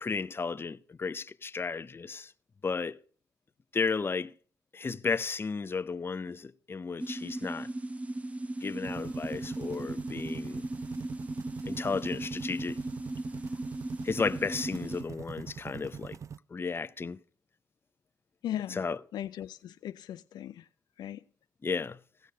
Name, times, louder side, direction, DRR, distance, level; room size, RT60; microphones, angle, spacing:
voice 1, 0.0-2.3 2.6-3.0 3.7-4.3 4.7-7.7 8.6-10.6 11.6-12.8 14.0-16.2 16.5-17.2 18.7-19.0 21.6-22.0, left 4 dB, 30° left, 0.6 m, -33 dB
sound 1, 7.0-15.0, right 1 dB, 20° right, 0.8 m, -37 dB
sound 2, 8.8-16.4, right 7 dB, 45° right, 0.4 m, -43 dB
voice 2, 18.4-18.8 19.1-20.7 21.0-21.2, left 11 dB, 70° left, 0.4 m, -38 dB
16.5 x 6.4 x 5.2 m
supercardioid pair, 60°, 7 cm